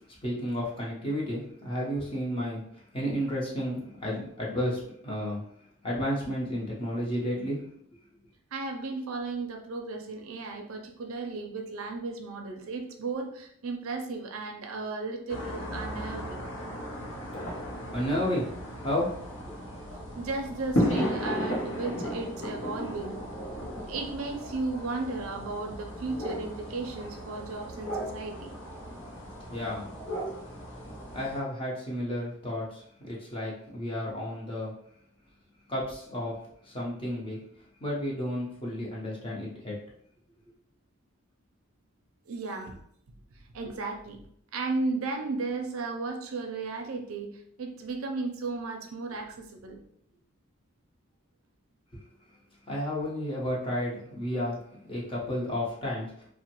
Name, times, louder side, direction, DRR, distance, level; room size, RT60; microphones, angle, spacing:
voice 1, 0.2-5.4 5.8-7.6 17.9-18.5 18.8-19.1 29.5-29.9 31.1-34.7 35.7-36.4 36.6-37.4 37.8-39.8 52.7-54.6 54.9-56.3, equal, 25° left, -5 dB, 0.7 m, -32 dB
voice 2, 8.5-16.5 20.2-23.2 23.9-28.5 42.3-42.8 43.5-44.2 44.5-49.8, right 3 dB, 80° right, 3 dB, 0.5 m, -35 dB
sound 1, 15.3-31.4, equal, 60° left, 0.7 m, -35 dB
3.0 x 2.1 x 2.9 m, 0.67 s
head